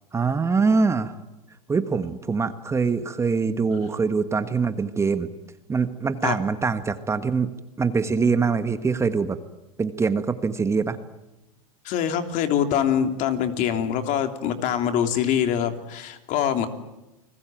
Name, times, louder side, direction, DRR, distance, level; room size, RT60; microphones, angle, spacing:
voice 1, 0.1-1.1 1.7-5.3 5.7-7.5 7.8-9.4 9.8-11.0, right 4 dB, 15° right, 10 dB, 1.4 m, -23 dB
voice 2, 11.8-16.7, left 9 dB, 45° left, 7 dB, 3.4 m, -24 dB
29.5 x 20.5 x 9.2 m, 0.97 s
hypercardioid pair, 115°, 18 cm